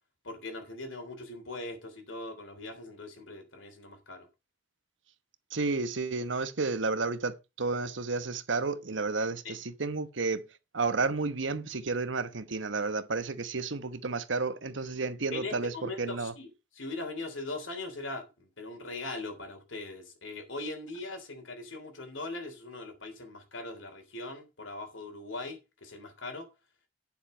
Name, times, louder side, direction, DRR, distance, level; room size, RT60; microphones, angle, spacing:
voice 1, 0.2-4.3 9.4-9.5 15.3-26.5, left 2 dB, 75° left, 3.4 m, -40 dB
voice 2, 5.5-10.4 10.7-16.3, right 3 dB, 70° right, 1.1 m, -31 dB
9.9 x 7.2 x 5.1 m
head